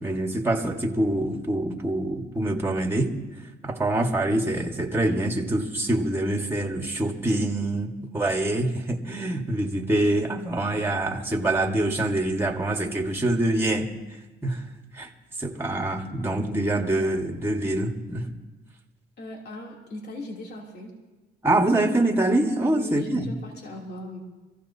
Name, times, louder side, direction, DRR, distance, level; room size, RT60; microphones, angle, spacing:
voice 1, 0.0-3.1 3.6-13.9 14.4-14.6 14.9-15.1 15.4-18.3 21.4-23.3, right 1 dB, 10° right, 2 dB, 1.6 m, -25 dB
voice 2, 19.2-21.0 22.7-24.2, left 1 dB, 55° left, -2 dB, 3.1 m, -39 dB
26.0 x 15.5 x 2.8 m, 1.2 s
cardioid pair, 90°, 20 cm